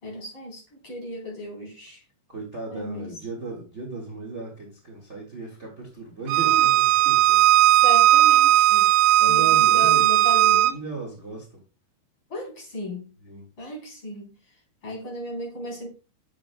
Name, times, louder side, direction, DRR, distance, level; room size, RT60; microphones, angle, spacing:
voice 1, 0.0-2.0 2.7-3.1 6.2-6.7 7.4-8.9 9.2-10.8 12.3-13.1 13.6-14.3 14.8-15.9, left 2 dB, 35° left, 4.5 m, -35 dB
voice 2, 2.3-7.4 9.2-10.1 10.4-11.6 13.2-13.5, right 3 dB, 45° right, 0.8 m, -36 dB
Bowed string instrument, 6.3-10.7, right 13 dB, 80° right, 2.5 m, -17 dB
10.0 x 7.5 x 2.3 m
omnidirectional pair, 4.5 m